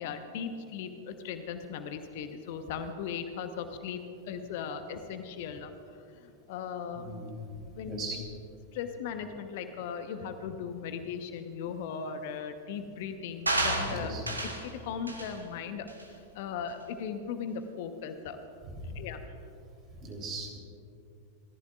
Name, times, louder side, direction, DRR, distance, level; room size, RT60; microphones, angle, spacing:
voice 1, 0.0-5.7 6.1-7.2 7.7-8.0 8.7-14.1 14.4-18.4 18.9-19.2, left 7 dB, 50° left, 8 dB, 1.0 m, -38 dB
voice 2, 7.0-7.4 7.8-8.2 13.9-14.2 18.7-19.0 19.9-20.6, right 2 dB, 30° right, 0 dB, 3.5 m, -39 dB
sound 1, 13.5-14.7 15.1-15.3 15.9-16.0, right 2 dB, 80° right, 1.4 m, -30 dB
29.5 x 14.5 x 2.5 m, 2.5 s
figure-of-eight pair, 90°, 0 cm